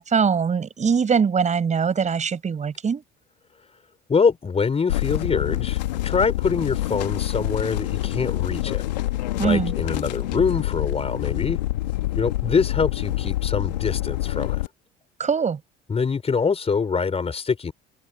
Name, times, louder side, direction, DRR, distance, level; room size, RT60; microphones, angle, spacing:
voice 1, 0.0-3.0 9.4-9.7 15.2-15.6, right 6 dB, 35° right, 6.9 m, -22 dB
voice 2, 4.1-8.8 9.4-11.6 12.1-14.7 15.9-17.7, left 5 dB, 30° left, 4.6 m, -24 dB
sound 1, 4.9-14.7, left 16 dB, 90° left, 1.6 m, -26 dB
hypercardioid pair, 75°, 21 cm